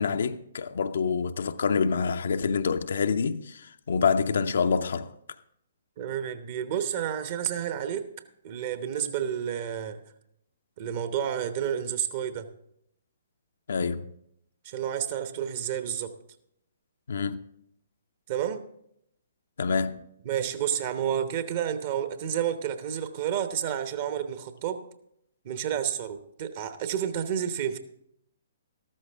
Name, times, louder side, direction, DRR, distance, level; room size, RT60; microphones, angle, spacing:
voice 1, 0.0-5.1 13.7-14.1 17.1-17.4 19.6-20.1, left 5 dB, 60° left, 0.6 m, -27 dB
voice 2, 6.0-8.1 8.4-10.0 10.8-12.5 14.6-16.1 18.3-18.7 20.2-24.8 25.4-27.8, right 9 dB, 40° right, 1.0 m, -30 dB
13.5 x 13.0 x 3.5 m
figure-of-eight pair, 125°, 0 cm